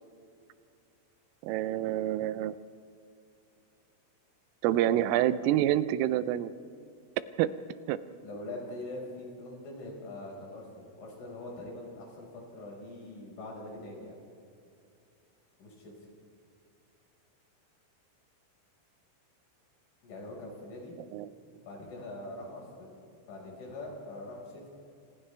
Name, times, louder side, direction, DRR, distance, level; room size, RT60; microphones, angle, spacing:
voice 1, 1.4-2.5 4.6-6.5 7.4-7.5 7.9-8.0 21.1-21.3, right 12 dB, 85° right, 14 dB, 3.3 m, -27 dB
voice 2, 8.2-14.2 15.6-15.9 20.0-21.0 21.5-24.7, left 2 dB, 65° left, -1 dB, 7.4 m, -43 dB
29.5 x 27.5 x 3.4 m, 2.4 s
omnidirectional pair, 5.8 m